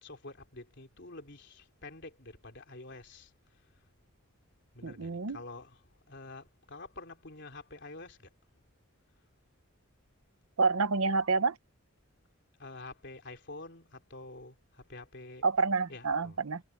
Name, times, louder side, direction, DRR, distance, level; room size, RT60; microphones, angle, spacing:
voice 1, 0.0-3.3 4.7-8.3 12.6-15.4 15.9-16.4, left 2 dB, 55° left, 3.4 m, -48 dB
voice 2, 4.8-5.4 10.6-11.6 15.4-16.6, right 4 dB, 80° right, 0.9 m, -28 dB
head